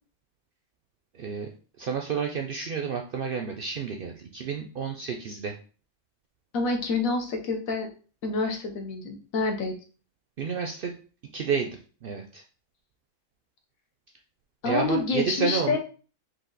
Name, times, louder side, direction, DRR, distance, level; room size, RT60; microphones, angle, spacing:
voice 1, 1.1-1.5 1.8-5.5 10.4-11.0 11.3-12.4 14.6-15.8, right 6 dB, 65° right, 3 dB, 0.5 m, -30 dB
voice 2, 6.5-7.9 8.2-9.7 14.6-15.8, left 3 dB, 85° left, 3 dB, 1.4 m, -27 dB
4.8 x 2.6 x 3.8 m, 0.37 s
omnidirectional pair, 1.4 m